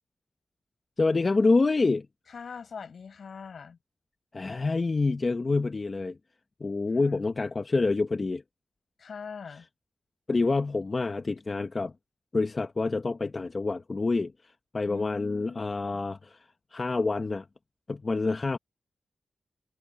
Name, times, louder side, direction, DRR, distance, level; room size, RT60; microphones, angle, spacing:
voice 1, 1.0-2.1 4.3-6.2 6.6-8.4 10.3-11.9 12.3-14.3 14.7-16.4 16.7-17.4 17.9-18.6, left 3 dB, 45° left, 0.9 m, -27 dB
voice 2, 2.3-3.8 6.9-7.2 9.0-9.7 14.8-15.6 15.9-16.0, left 6 dB, 75° left, 6.8 m, -42 dB
cardioid pair, 60°, 0 cm